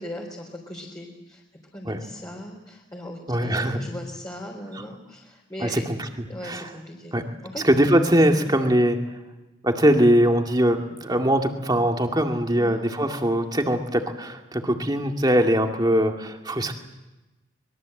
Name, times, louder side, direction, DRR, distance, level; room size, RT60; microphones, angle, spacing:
voice 1, 0.0-1.4 1.7-5.8 6.3-7.2 7.4-7.6 8.3-8.5 12.6-12.8, left 1 dB, 20° left, -2 dB, 3.8 m, -38 dB
voice 2, 3.3-3.8 5.6-5.8 6.4-6.6 7.1-7.2 7.6-9.0 9.6-16.7, equal, 20° right, 3 dB, 2.2 m, -21 dB
25.0 x 22.0 x 7.8 m, 1.0 s
head